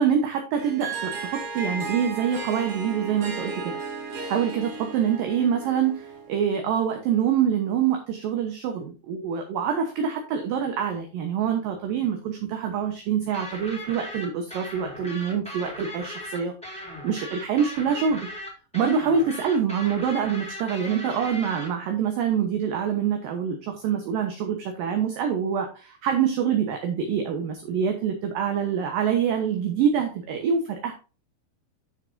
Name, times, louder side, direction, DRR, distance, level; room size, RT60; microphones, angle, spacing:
voice 1, 0.0-3.7 4.3-16.5 17.0-18.3 18.7-30.9, right 7 dB, 70° right, 4 dB, 2.3 m, -25 dB
Harp, 0.6-6.4, right 4 dB, 45° right, 2.4 m, -35 dB
sound 1, 13.3-21.7, equal, ahead, 1.9 m, -38 dB
10.0 x 6.6 x 2.6 m, 0.33 s
omnidirectional pair, 5.0 m